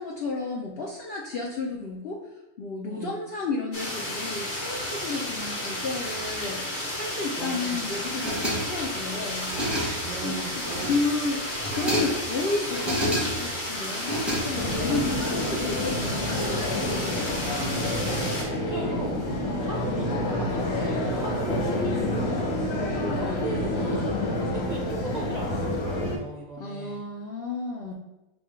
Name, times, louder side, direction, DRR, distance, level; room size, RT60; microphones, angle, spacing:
voice 1, 0.0-2.2 2.6-9.5 10.2-11.4 11.7-17.2 21.3-21.9 22.9-23.6 26.6-27.9, left 3 dB, 65° left, -2 dB, 0.6 m, -32 dB
voice 2, 2.9-3.2 7.4-8.0 10.0-10.9 18.0-19.2 19.6-27.0, right 2 dB, 45° right, -3 dB, 0.6 m, -37 dB
sound 1, 3.7-18.4, left 1 dB, 35° left, 1.2 m, -32 dB
sound 2, 8.0-8.9 9.3-10.2 10.5-11.2 11.5-12.3 12.7-13.6 13.9-14.9, equal, ahead, 0.8 m, -30 dB
sound 3, 14.5-26.2, left 1 dB, 80° left, 1.4 m, -28 dB
5.9 x 2.3 x 3.6 m, 1.0 s
omnidirectional pair, 1.5 m